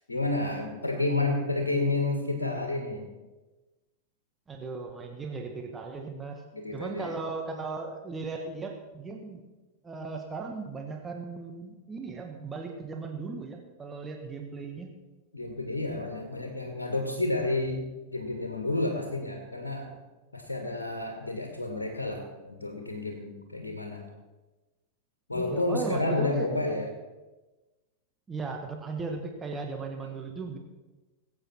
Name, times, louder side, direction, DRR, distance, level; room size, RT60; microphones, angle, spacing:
voice 1, 0.1-3.0 6.5-7.2 15.3-19.9 20.3-24.1 25.3-26.9, left 2 dB, 75° left, 3 dB, 1.9 m, -30 dB
voice 2, 4.5-6.4 6.7-9.5 9.8-14.9 25.3-26.5 28.3-30.6, right 4 dB, 15° right, 2 dB, 1.7 m, -37 dB
20.5 x 8.7 x 4.5 m, 1.1 s
figure-of-eight pair, 90°, 0 cm